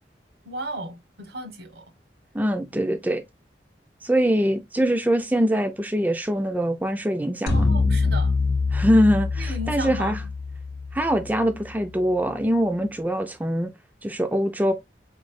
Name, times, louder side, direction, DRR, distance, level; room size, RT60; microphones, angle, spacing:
voice 1, 0.4-1.9 7.5-8.3 9.4-10.3, right 1 dB, 75° right, 1.2 m, -35 dB
voice 2, 2.3-3.2 4.0-7.7 8.7-10.2 10.9-13.7 14.0-14.7, equal, 10° right, 0.4 m, -23 dB
sound 1, 7.5-11.8, left 3 dB, 65° left, 0.6 m, -25 dB
4.2 x 3.1 x 2.5 m
head